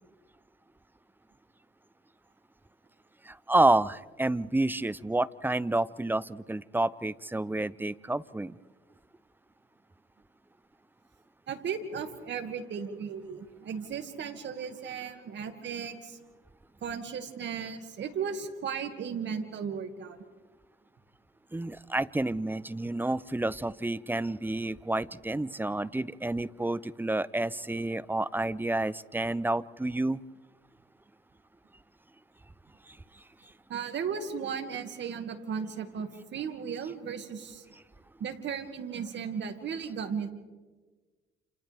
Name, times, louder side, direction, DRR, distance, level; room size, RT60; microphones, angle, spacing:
voice 1, 3.3-8.6 21.5-30.2, right 2 dB, 10° right, 18 dB, 0.5 m, -29 dB
voice 2, 11.5-16.2 16.8-20.2 33.7-37.6 38.2-40.3, right 6 dB, 65° right, 6 dB, 2.2 m, -36 dB
29.5 x 28.5 x 3.5 m, 1.3 s
cardioid pair, 90°, 20 cm